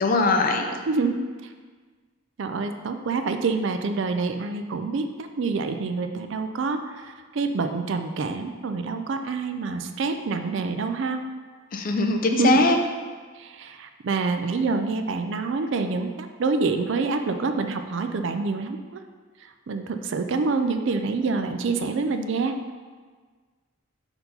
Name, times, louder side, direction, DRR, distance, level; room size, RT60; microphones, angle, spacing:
voice 1, 0.0-0.7 11.7-12.8, left 3 dB, 40° left, 4 dB, 0.5 m, -21 dB
voice 2, 0.9-1.2 2.4-11.2 12.4-12.6 13.4-19.0 19.7-22.6, right 4 dB, 60° right, 7 dB, 0.4 m, -27 dB
4.4 x 4.2 x 5.4 m, 1.5 s
head